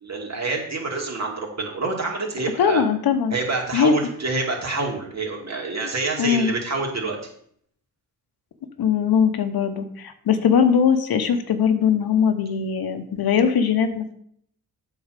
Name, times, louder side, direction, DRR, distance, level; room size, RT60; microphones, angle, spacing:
voice 1, 0.0-2.8 3.3-7.2, right 3 dB, 45° right, -1 dB, 2.9 m, -27 dB
voice 2, 2.6-3.3 3.7-3.9 6.2-6.5 8.8-14.1, left 7 dB, 75° left, 9 dB, 1.0 m, -20 dB
8.2 x 4.7 x 6.7 m, 0.66 s
cardioid pair, 65°, 37 cm